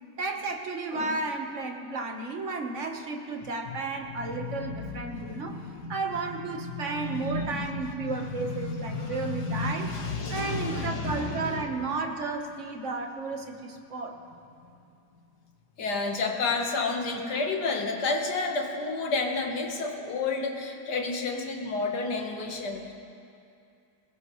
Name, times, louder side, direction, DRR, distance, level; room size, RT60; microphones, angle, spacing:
voice 1, 0.2-5.6 5.9-9.9 10.3-14.2, right 3 dB, 50° right, 3 dB, 1.5 m, -33 dB
voice 2, 4.1-11.7 15.8-22.9, left 3 dB, 80° left, 3 dB, 1.9 m, -31 dB
21.5 x 19.0 x 3.2 m, 2.6 s
omnidirectional pair, 1.7 m